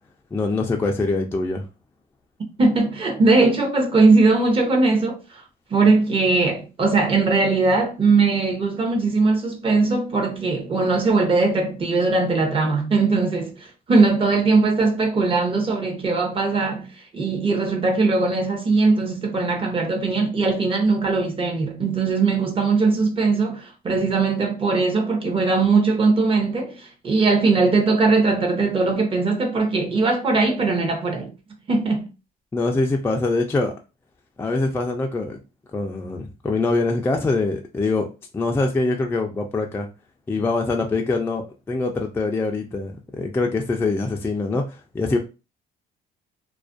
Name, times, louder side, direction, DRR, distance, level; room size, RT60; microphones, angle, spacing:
voice 1, 0.3-1.7 32.5-33.7 34.4-35.4 35.7-38.1 38.3-39.9 40.3-45.2, left 3 dB, 15° left, 0.3 m, -24 dB
voice 2, 2.6-5.4 5.7-16.9 17.1-31.3 31.7-32.1, right 3 dB, 30° right, 0.7 m, -20 dB
2.3 x 2.1 x 2.5 m
cardioid pair, 110°, 17 cm